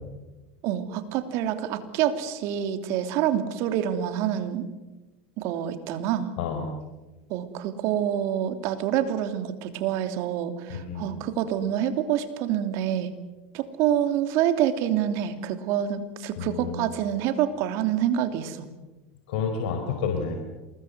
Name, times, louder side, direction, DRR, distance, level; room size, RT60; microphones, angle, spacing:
voice 1, 0.6-4.7 5.4-6.3 7.3-13.1 13.5-18.6, right 10 dB, 60° right, 8 dB, 3.0 m, -27 dB
voice 2, 10.7-11.1 16.4-16.8 19.3-20.4, left 6 dB, 70° left, 4 dB, 4.5 m, -29 dB
27.5 x 20.5 x 8.1 m, 1.1 s
hypercardioid pair, 100°, 6 cm